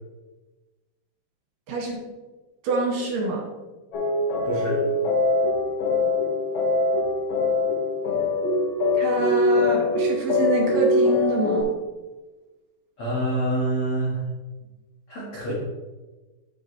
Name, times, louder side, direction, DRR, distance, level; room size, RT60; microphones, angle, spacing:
voice 1, 1.7-2.0 2.6-3.4 8.9-11.7, right 3 dB, 65° right, -2 dB, 3.8 m, -26 dB
sound 1, 3.9-11.6, left 2 dB, 50° left, 4.1 m, -23 dB
voice 2, 4.4-4.8 13.0-14.2 15.1-15.5, right 1 dB, 70° left, -5 dB, 1.3 m, -26 dB
9.3 x 8.8 x 3.2 m, 1.2 s
omnidirectional pair, 5.5 m